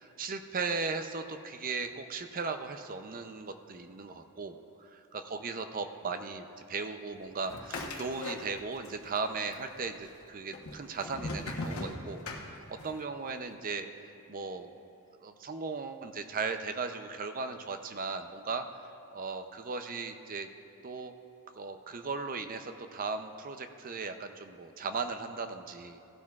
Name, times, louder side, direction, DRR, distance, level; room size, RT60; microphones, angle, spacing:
voice 1, 0.0-14.7 15.2-18.7 19.1-20.5 20.8-21.1 21.5-26.0, right 4 dB, 40° right, 8 dB, 0.5 m, -37 dB
sound 1, 7.4-8.9 9.2-9.9 10.5-13.0, left 2 dB, 65° left, 1.1 m, -39 dB
16.0 x 12.0 x 2.4 m, 2.9 s
head